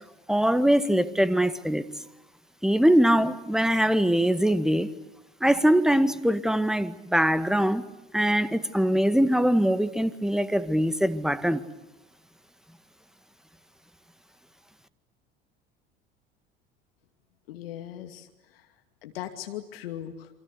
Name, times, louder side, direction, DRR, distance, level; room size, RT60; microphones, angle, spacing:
voice 1, 0.3-1.8 2.6-4.9 5.4-7.9 8.1-11.6, equal, ahead, 2.0 m, -22 dB
voice 2, 17.5-18.3 18.5-18.7 19.0-20.3, left 11 dB, 75° left, 2.6 m, -38 dB
29.0 x 25.0 x 8.3 m
hypercardioid pair, 75°, 29 cm